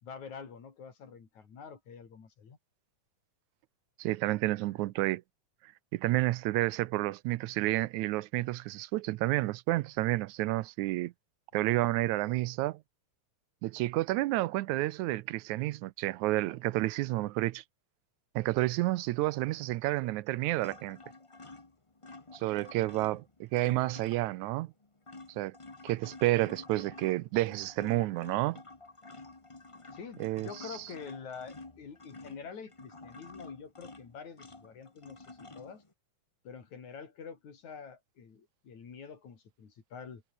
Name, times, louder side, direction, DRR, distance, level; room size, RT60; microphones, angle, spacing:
voice 1, 0.0-2.6 29.9-35.8 36.4-40.2, left 6 dB, 70° left, 4.9 m, -47 dB
voice 2, 4.0-5.2 5.9-11.1 11.5-12.8 13.6-17.6 18.4-21.0 22.3-24.7 25.4-25.6 25.8-28.6 30.2-30.5, right 18 dB, 85° right, 2.0 m, -30 dB
sound 1, 20.6-24.5 24.8-35.9, left 3 dB, 50° left, 0.3 m, -50 dB
omnidirectional pair, 3.4 m